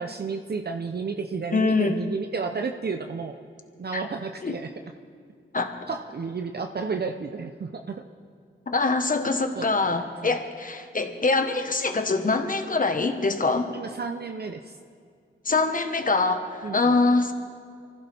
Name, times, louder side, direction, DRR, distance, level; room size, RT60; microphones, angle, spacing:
voice 1, 0.0-3.4 3.8-4.7 5.9-8.1 9.6-9.9 10.2-10.4 13.7-14.8 16.6-16.9, right 4 dB, 50° right, 5 dB, 0.8 m, -32 dB
voice 2, 1.5-2.0 3.9-4.0 4.4-4.5 5.5-5.9 8.7-13.7 15.4-17.3, left 3 dB, 40° left, 6 dB, 1.4 m, -24 dB
24.5 x 15.5 x 3.6 m, 2.2 s
cardioid pair, 60°, 21 cm